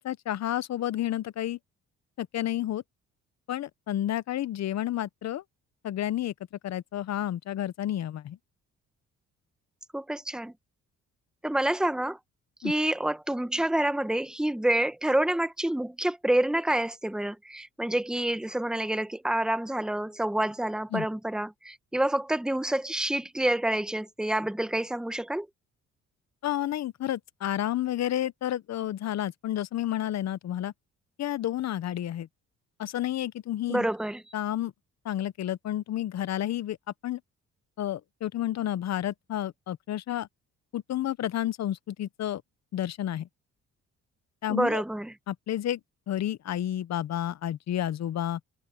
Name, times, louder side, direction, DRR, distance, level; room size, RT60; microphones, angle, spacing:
voice 1, 0.0-1.6 2.2-2.8 3.5-5.4 5.8-6.3 6.6-8.4 12.6-12.7 20.9-21.1 26.4-30.7 31.2-32.3 32.8-33.9 34.3-34.7 35.0-36.8 37.0-37.2 37.8-40.3 40.7-42.4 42.7-43.3 44.4-44.8 45.3-45.8 46.1-48.4, left 12 dB, 60° left, 0.8 m, -30 dB
voice 2, 9.9-10.5 11.4-12.2 12.6-25.5 33.7-34.2 44.5-45.1, right 1 dB, ahead, 1.1 m, -28 dB
cardioid pair, 90°, 30 cm